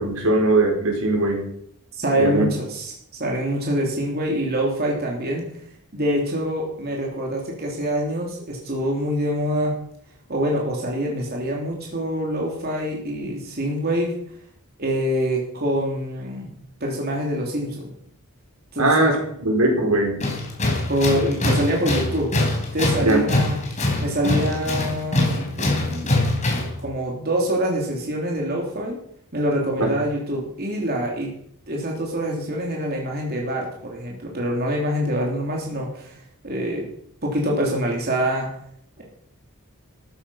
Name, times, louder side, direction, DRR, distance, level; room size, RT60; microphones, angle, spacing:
voice 1, 0.0-1.4 2.2-2.4 18.8-19.2 19.4-20.2 23.0-23.2 29.8-29.9, right 2 dB, 80° right, 1 dB, 4.7 m, -19 dB
voice 2, 2.0-2.9 3.2-5.4 5.9-9.8 10.3-14.1 14.8-16.5 16.8-17.9 18.7-19.2 20.9-22.3 22.7-23.6 24.0-26.3 26.8-29.0 29.3-31.3 31.7-36.2 36.4-36.9 37.2-38.5 39.0-39.1, equal, 45° right, -1 dB, 3.2 m, -25 dB
Tools, 20.2-26.8, left 2 dB, 35° left, 4.0 m, -23 dB
14.0 x 11.5 x 5.7 m, 0.69 s
head